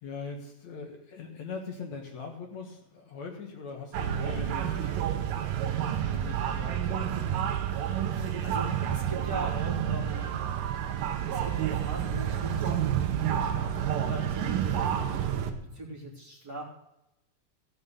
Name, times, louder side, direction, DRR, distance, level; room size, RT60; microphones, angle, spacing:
voice 1, 0.0-5.1 6.0-7.4, left 5 dB, 60° left, 1 dB, 2.6 m, -41 dB
sound 1, 3.9-15.5, right 9 dB, 80° right, 2.7 m, -29 dB
voice 2, 8.1-10.4 11.3-16.6, right 1 dB, 30° right, -3 dB, 3.0 m, -41 dB
16.0 x 7.2 x 6.9 m, 0.87 s
omnidirectional pair, 3.9 m